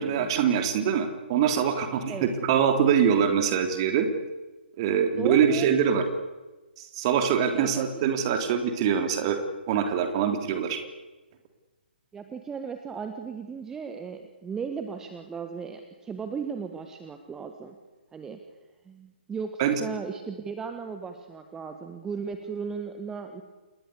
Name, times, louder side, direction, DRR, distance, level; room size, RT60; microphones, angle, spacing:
voice 1, 0.0-4.1 4.8-6.0 6.9-9.4 9.7-10.8 19.6-19.7, right 8 dB, 30° right, 6 dB, 3.2 m, -24 dB
voice 2, 5.1-6.0 7.5-8.0 12.1-17.8 18.1-18.4 18.8-23.4, right 5 dB, 10° right, 6 dB, 1.5 m, -36 dB
28.5 x 20.0 x 8.4 m, 1.2 s
figure-of-eight pair, 135°, 6 cm